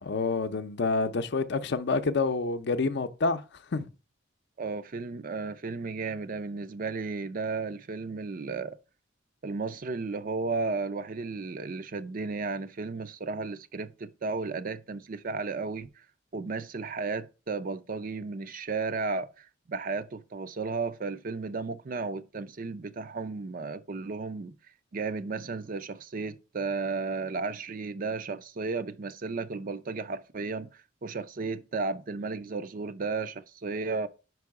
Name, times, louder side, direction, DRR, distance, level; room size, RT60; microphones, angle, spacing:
voice 1, 0.0-3.4 3.7-3.9, left 3 dB, 60° left, 0.5 m, -28 dB
voice 2, 4.6-8.8 9.4-16.0 16.3-24.5 24.9-34.1, right 4 dB, 45° right, 0.5 m, -34 dB
5.3 x 4.8 x 4.8 m
head